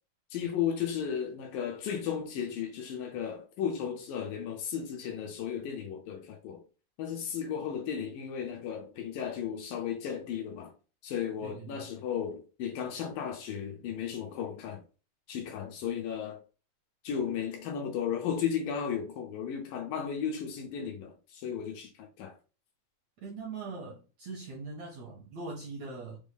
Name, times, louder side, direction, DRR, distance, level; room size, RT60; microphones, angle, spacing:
voice 1, 0.3-6.6 7.0-10.7 11.0-14.8 15.3-16.4 17.0-22.4, left 8 dB, 75° left, 2.2 m, -34 dB
voice 2, 11.4-11.8 23.2-26.2, right 3 dB, 70° right, 1.7 m, -41 dB
6.1 x 2.1 x 3.3 m
omnidirectional pair, 4.4 m